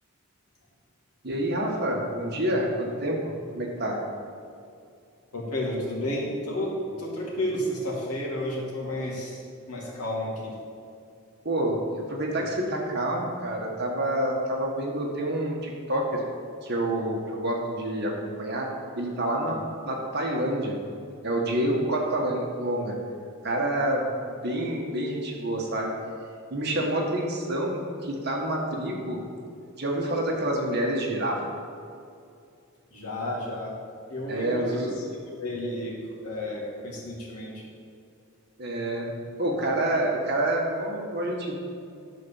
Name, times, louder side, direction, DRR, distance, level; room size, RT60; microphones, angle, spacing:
voice 1, 1.2-4.0 11.4-16.2 16.6-20.8 21.2-23.0 23.4-25.9 26.5-29.2 29.8-31.6 34.3-35.0 38.6-41.5, right 1 dB, 45° right, -1 dB, 1.6 m, -28 dB
voice 2, 5.3-6.7 7.0-10.5 12.4-12.5 19.5-19.6 32.9-33.7 34.1-36.0 36.2-37.6, left 1 dB, 90° left, -4 dB, 2.5 m, -32 dB
11.0 x 4.3 x 7.2 m, 2.4 s
head